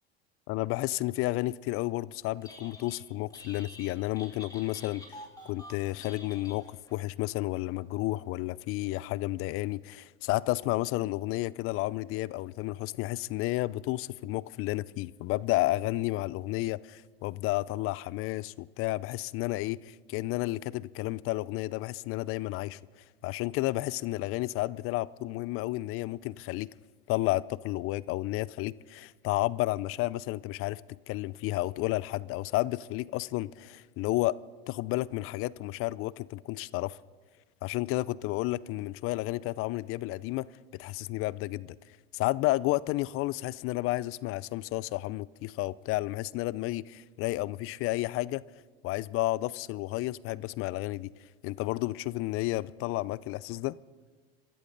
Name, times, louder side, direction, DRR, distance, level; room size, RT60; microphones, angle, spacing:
voice 1, 0.5-22.8 23.2-26.7 27.1-30.8 31.1-34.3 34.7-37.0 37.6-40.5 40.8-41.8 42.1-48.4 48.8-51.1 51.4-53.8, left 18 dB, 45° left, 0.5 m, -31 dB
Telephone, 2.3-3.0 3.3-7.0, left 1 dB, 10° left, 3.0 m, -49 dB
26.0 x 13.5 x 3.9 m
hypercardioid pair, 90°, 31 cm